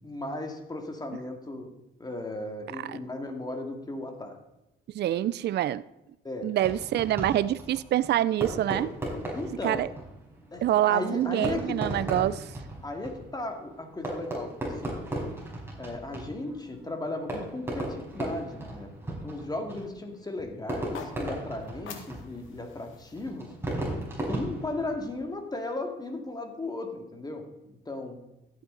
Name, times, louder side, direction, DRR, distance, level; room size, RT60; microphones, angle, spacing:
voice 1, 0.0-1.7 2.0-4.4 6.2-6.5 9.3-9.9 10.5-11.8 12.8-15.0 15.8-23.5 24.2-27.4 27.9-28.2, left 2 dB, 20° left, 4 dB, 2.2 m, -36 dB
voice 2, 4.9-5.8 6.4-8.9 9.6-9.9 10.6-12.5, right 12 dB, 60° right, 16 dB, 0.4 m, -26 dB
Fireworks, 6.6-25.4, right 1 dB, 10° right, 4.8 m, -37 dB
sound 1, 20.7-24.9, left 6 dB, 80° left, 1.7 m, -48 dB
14.0 x 9.0 x 3.9 m, 0.93 s
cardioid pair, 90°, 20 cm